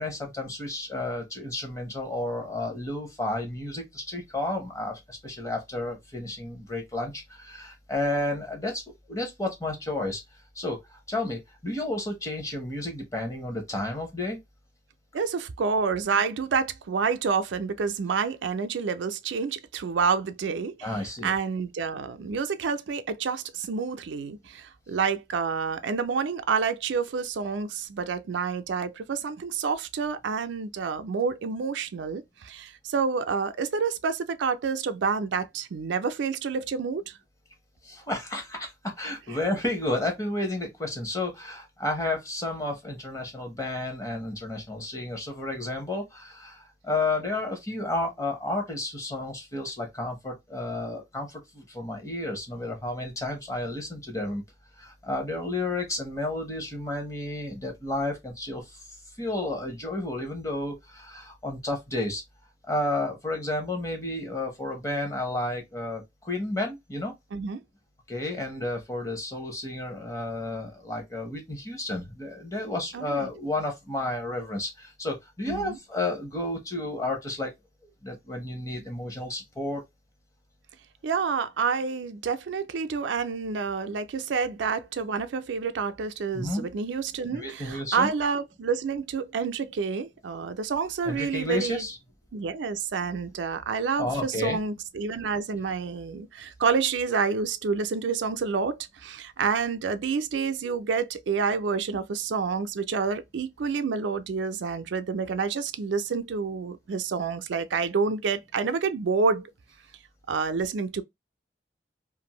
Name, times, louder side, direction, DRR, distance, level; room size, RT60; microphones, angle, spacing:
voice 1, 0.0-8.8 9.1-10.2 10.5-14.4 20.8-21.3 37.8-38.7 39.0-54.4 54.8-58.8 59.2-62.2 62.7-67.1 68.1-77.5 78.0-79.8 86.3-86.7 87.3-88.1 91.0-92.0 94.0-94.6, left 2 dB, 15° left, 0.8 m, -31 dB
voice 2, 15.1-20.9 21.2-37.1 67.3-67.6 72.9-73.3 75.5-75.8 81.0-91.9 92.3-109.5 110.3-111.0, right 5 dB, 85° right, 0.4 m, -28 dB
2.5 x 2.5 x 2.9 m
head